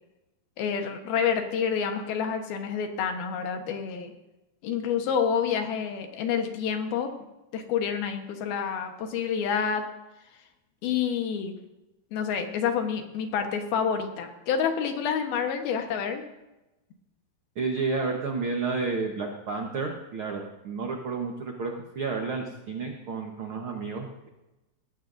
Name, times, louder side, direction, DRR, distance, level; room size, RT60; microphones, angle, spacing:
voice 1, 0.6-4.1 4.6-7.1 7.5-9.9 10.8-11.6 12.1-16.2, left 7 dB, 80° left, 5 dB, 3.1 m, -28 dB
voice 2, 17.5-24.3, right 4 dB, 70° right, 2 dB, 1.2 m, -31 dB
19.0 x 14.5 x 2.7 m, 0.99 s
omnidirectional pair, 4.3 m